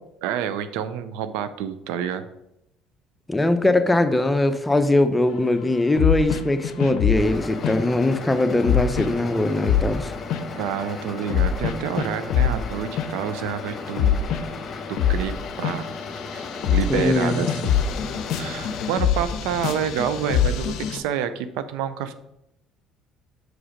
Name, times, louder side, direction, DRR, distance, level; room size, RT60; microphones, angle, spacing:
voice 1, 0.2-2.3 10.5-14.3 14.9-15.9 16.3-17.7 18.4-22.1, right 9 dB, 75° right, 12 dB, 0.5 m, -28 dB
voice 2, 3.3-10.1 16.9-17.6, left 2 dB, 15° left, 8 dB, 0.8 m, -21 dB
sound 1, 6.0-7.3 7.6-7.8 8.6-9.1 9.6-10.6 11.3-12.6 13.0-13.4 13.7-21.0, left 8 dB, 65° left, 0.6 m, -24 dB
sound 2, 7.2-18.9, left 4 dB, 35° left, 1.1 m, -35 dB
6.2 x 4.9 x 5.1 m, 0.85 s
hypercardioid pair, 65°, 0 cm